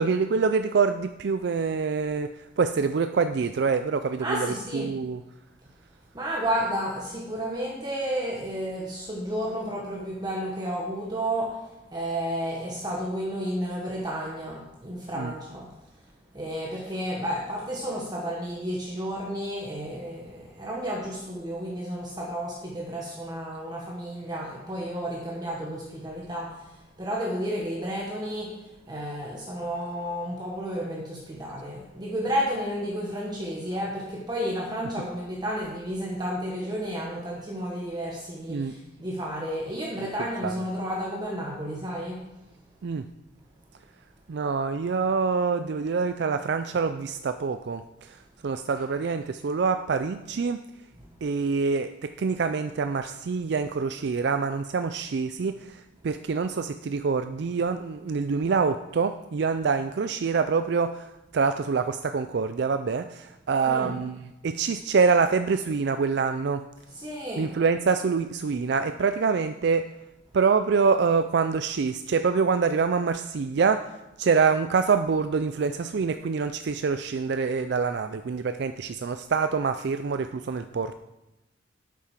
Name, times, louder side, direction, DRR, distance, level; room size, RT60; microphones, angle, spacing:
voice 1, 0.0-5.2 15.1-15.3 38.5-38.8 40.0-40.6 42.8-43.1 44.3-50.6 51.2-66.6 67.4-69.8 70.3-73.9 74.2-80.9, right 5 dB, 60° right, 10 dB, 0.4 m, -26 dB
voice 2, 4.2-4.9 6.1-11.6 11.9-15.7 16.3-26.7 27.0-28.6 28.9-42.2 63.7-63.9 66.9-67.5, equal, 20° right, -3 dB, 1.2 m, -32 dB
8.8 x 7.5 x 5.8 m, 0.95 s
head